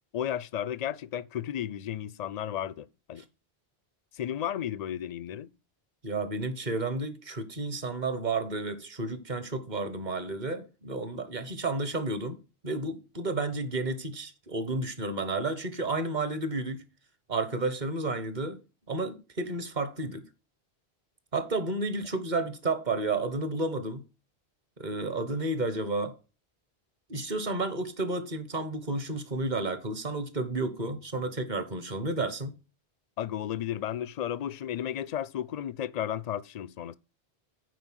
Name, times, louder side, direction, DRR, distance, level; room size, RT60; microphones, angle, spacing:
voice 1, 0.1-3.3 4.1-5.5 33.2-37.0, left 10 dB, 50° left, 0.5 m, -33 dB
voice 2, 6.0-16.8 17.3-18.6 18.9-20.2 21.3-24.0 24.8-26.2 27.1-32.5, right 2 dB, 45° right, 1.3 m, -31 dB
9.3 x 4.4 x 6.2 m
omnidirectional pair, 1.1 m